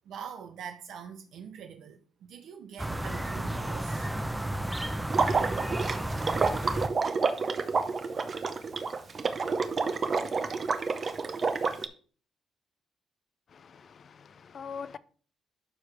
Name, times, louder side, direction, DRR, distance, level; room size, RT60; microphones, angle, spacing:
voice 1, 0.1-4.1, right 7 dB, 75° right, 0.6 m, -44 dB
sound 1, 2.8-6.9, right 1 dB, 10° right, 0.7 m, -32 dB
Water / Liquid, 5.1-11.9, right 4 dB, 40° right, 0.8 m, -29 dB
voice 2, 13.5-15.0, left 6 dB, 50° left, 0.5 m, -43 dB
11.5 x 4.7 x 3.3 m
cardioid pair, 90°, 0 cm